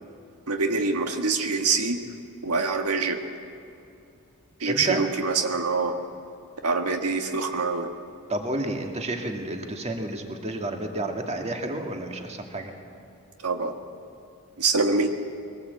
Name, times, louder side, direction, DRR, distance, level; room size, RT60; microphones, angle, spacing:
voice 1, 0.5-2.0 2.4-3.2 4.6-5.9 6.6-7.9 13.4-13.7 14.6-15.1, right 4 dB, 85° right, 5 dB, 1.5 m, -25 dB
voice 2, 4.7-5.0 8.3-12.7, right 2 dB, 30° right, 4 dB, 2.1 m, -30 dB
22.5 x 18.0 x 8.3 m, 2.6 s
head